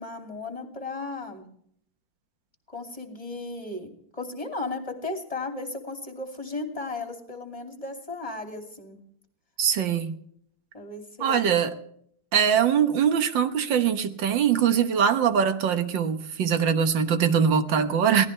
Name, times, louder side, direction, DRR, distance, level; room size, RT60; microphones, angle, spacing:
voice 1, 0.0-1.5 2.7-9.0 10.7-11.4, left 3 dB, 15° left, 4 dB, 2.7 m, -35 dB
voice 2, 9.6-10.2 11.2-11.7 12.3-18.3, right 7 dB, 60° right, 9 dB, 1.8 m, -22 dB
23.0 x 17.5 x 3.3 m, 0.67 s
omnidirectional pair, 2.4 m